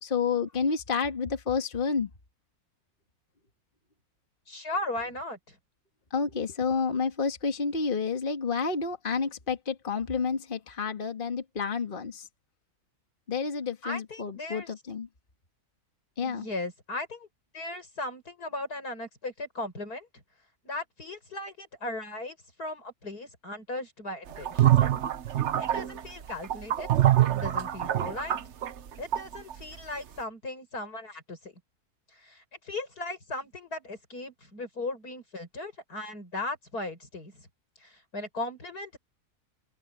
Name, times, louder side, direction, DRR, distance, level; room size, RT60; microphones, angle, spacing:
voice 1, 0.0-2.1 6.1-12.3 13.3-15.1 16.2-16.5, left 5 dB, 35° left, 1.9 m, -30 dB
voice 2, 4.5-5.6 13.8-14.7 16.2-17.3 17.5-20.1 20.6-24.7 25.6-26.9 27.3-28.4 29.0-31.5 32.1-37.5 37.8-39.0, left 2 dB, 90° left, 7.3 m, -37 dB
sound 1, 24.3-29.6, right 12 dB, 55° right, 1.0 m, -25 dB
omnidirectional pair, 1.6 m